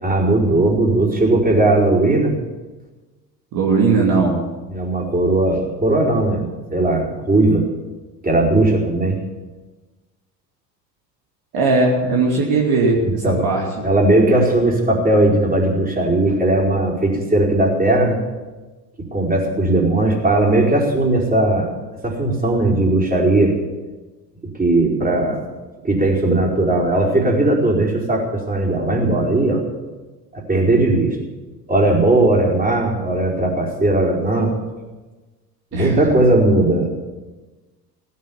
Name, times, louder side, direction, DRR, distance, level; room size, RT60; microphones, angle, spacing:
voice 1, 0.0-2.3 4.7-7.6 8.2-9.2 13.0-13.5 13.8-18.2 19.1-21.7 22.0-23.5 24.6-25.4 25.8-29.6 30.3-31.2 31.7-34.5 35.7-36.9, right 2 dB, 15° right, -2 dB, 4.7 m, -17 dB
voice 2, 3.5-4.4 11.5-13.8 35.7-36.0, right 3 dB, 45° right, -2 dB, 2.9 m, -18 dB
17.0 x 9.7 x 7.2 m, 1.2 s
hypercardioid pair, 70°, 50 cm